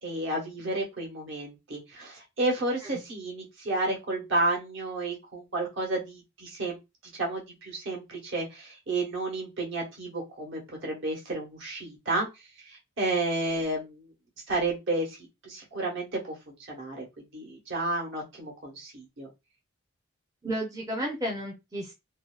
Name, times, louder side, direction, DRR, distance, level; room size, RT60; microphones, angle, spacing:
voice 1, 0.0-6.8 7.2-12.3 12.6-14.1 14.5-19.3, right 2 dB, 55° right, 1.0 m, -31 dB
voice 2, 20.4-21.9, equal, 15° right, 0.5 m, -33 dB
2.6 x 2.2 x 2.3 m
head